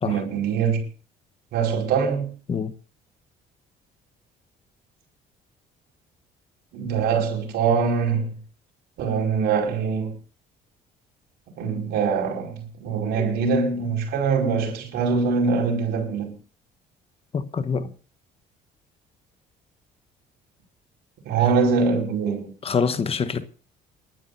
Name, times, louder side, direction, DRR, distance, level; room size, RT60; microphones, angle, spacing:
voice 1, 0.0-0.8 1.5-2.3 6.7-8.4 9.0-10.1 11.6-16.3 21.2-22.5, right 5 dB, 80° right, 5.1 m, -23 dB
voice 2, 17.3-17.9 22.6-23.5, left 5 dB, 35° left, 1.0 m, -26 dB
28.5 x 12.0 x 2.7 m
cardioid pair, 110°, 17 cm